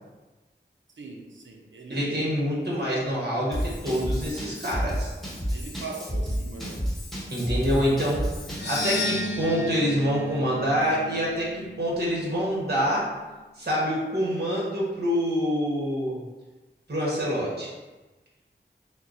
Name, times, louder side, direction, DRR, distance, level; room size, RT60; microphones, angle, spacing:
voice 1, 1.0-2.3 5.5-6.8, right 3 dB, 85° right, 1 dB, 0.6 m, -39 dB
voice 2, 1.9-5.1 7.3-8.3 8.6-13.1 13.6-16.2 16.9-17.7, equal, 60° right, -5 dB, 1.4 m, -26 dB
Drum kit / Drum, 3.5-9.1, equal, ahead, 1.1 m, -31 dB
sound 1, 8.5-12.8, left 2 dB, 65° left, 0.5 m, -34 dB
5.7 x 2.2 x 2.7 m, 1.2 s
wide cardioid pair, 40°, 19 cm